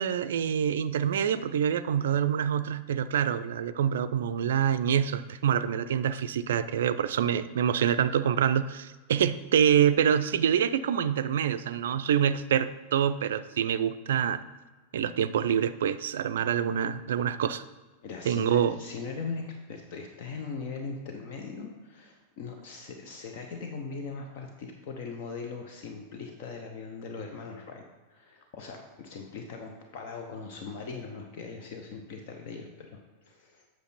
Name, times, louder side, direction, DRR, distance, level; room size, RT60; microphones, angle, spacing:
voice 1, 0.0-14.4 14.9-17.6 18.3-18.8, right 8 dB, 60° right, 13 dB, 0.4 m, -26 dB
voice 2, 18.0-27.8 28.1-33.7, left 4 dB, 50° left, 3 dB, 0.9 m, -40 dB
8.3 x 6.2 x 4.2 m, 1.2 s
figure-of-eight pair, 90°, 0 cm